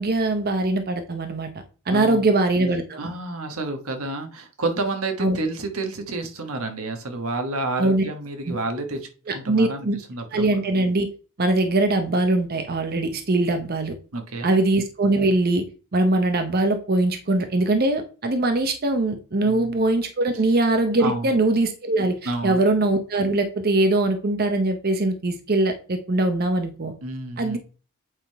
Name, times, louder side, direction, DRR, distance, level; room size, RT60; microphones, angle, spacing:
voice 1, 0.0-1.5 1.9-3.1 5.2-5.4 7.8-8.0 8.5-8.6 9.3-9.9 10.3-11.1 11.4-14.0 14.4-15.6 15.9-26.9 27.4-27.6, right 2 dB, 45° right, 7 dB, 0.8 m, -22 dB
voice 2, 1.9-2.3 3.0-9.1 9.3-10.6 14.1-14.6 19.4-19.8 21.0-21.3 22.2-22.6 27.0-27.6, right 2 dB, 85° right, 5 dB, 1.3 m, -30 dB
8.2 x 3.7 x 4.7 m, 0.35 s
head